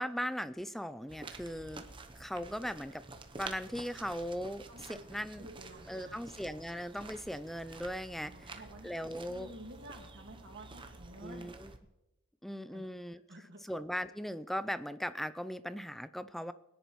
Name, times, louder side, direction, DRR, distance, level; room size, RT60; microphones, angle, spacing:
voice 1, 0.0-1.8 2.2-3.0 3.4-5.5 5.9-8.5 8.8-9.5 11.2-11.7 12.4-13.2 13.6-16.5, equal, ahead, 13 dB, 0.4 m, -38 dB
sound 1, 1.1-11.8, right 3 dB, 25° right, 0.8 m, -50 dB
voice 2, 4.7-5.1 5.4-6.3 8.2-11.5 12.7-12.9 13.3-13.6, right 1 dB, 55° right, 3 dB, 1.9 m, -51 dB
22.5 x 10.0 x 3.1 m, 0.97 s
head